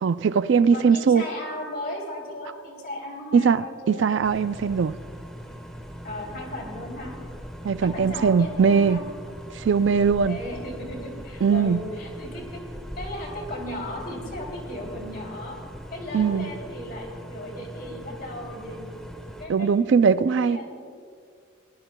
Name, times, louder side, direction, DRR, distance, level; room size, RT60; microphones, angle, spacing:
voice 1, 0.0-1.2 3.3-5.0 7.6-9.0 9.5-10.4 11.4-11.8 16.1-16.5 19.5-20.6, right 6 dB, 60° right, 0.4 m, -20 dB
voice 2, 0.7-4.1 6.0-7.1 7.8-9.0 10.3-12.6 13.0-15.6 15.9-18.9 19.4-19.7 20.2-20.8, left 1 dB, 50° left, 3.2 m, -36 dB
sound 1, 4.2-19.5, equal, 5° left, 1.2 m, -40 dB
21.5 x 18.0 x 2.2 m
head